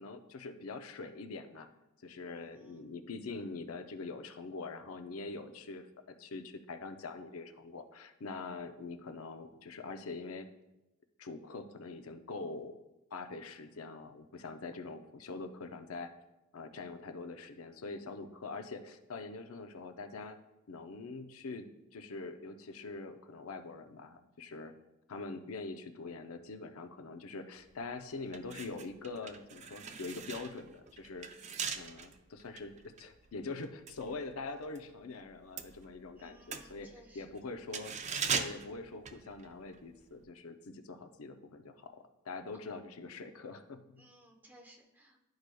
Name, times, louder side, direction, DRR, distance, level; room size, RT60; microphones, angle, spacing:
voice 1, 0.0-1.7 2.0-5.9 6.2-10.5 11.2-12.8 13.1-16.1 16.5-20.4 20.7-21.7 21.9-24.7 25.1-36.9 37.1-37.9 38.3-44.0, left 3 dB, 80° left, 8 dB, 0.6 m, -44 dB
voice 2, 2.3-2.8 36.2-37.2 44.0-45.2, equal, 10° right, 1 dB, 0.8 m, -60 dB
sound 1, 27.7-27.8 28.2-34.9 35.1-39.8 40.1-40.2, right 6 dB, 35° right, 0.4 m, -41 dB
11.5 x 4.7 x 2.2 m, 0.96 s
head